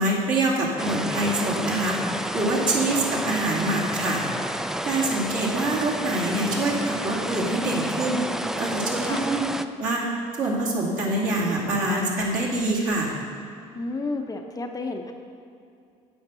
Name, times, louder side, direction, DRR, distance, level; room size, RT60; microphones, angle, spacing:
voice 1, 0.0-2.0 2.3-4.2 4.8-8.2 8.6-9.4 9.8-10.0 10.4-13.1, right 2 dB, 55° right, -4 dB, 2.5 m, -25 dB
sound 1, 0.8-9.7, right 1 dB, 5° right, 0.4 m, -30 dB
voice 2, 13.7-15.1, left 3 dB, 20° left, 4 dB, 0.7 m, -31 dB
8.9 x 5.3 x 6.8 m, 2.5 s
supercardioid pair, 75°, 16 cm